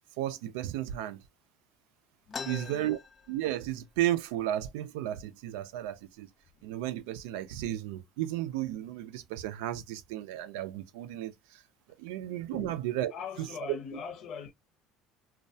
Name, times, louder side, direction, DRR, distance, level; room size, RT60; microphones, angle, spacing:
voice 1, 0.2-1.2 2.5-3.0 3.3-6.3 6.6-11.6 12.0-13.1 13.4-13.5, right 13 dB, 85° right, 0.4 m, -34 dB
voice 2, 2.3-2.9 12.5-12.8 13.1-14.5, left 6 dB, 65° left, 0.8 m, -41 dB
sound 1, 2.3-3.9 4.3-4.4 4.6-5.2 5.8-6.0 6.7-6.9 7.3-7.8, left 5 dB, 35° left, 0.4 m, -44 dB
2.3 x 2.1 x 2.6 m
supercardioid pair, 85°, 0 cm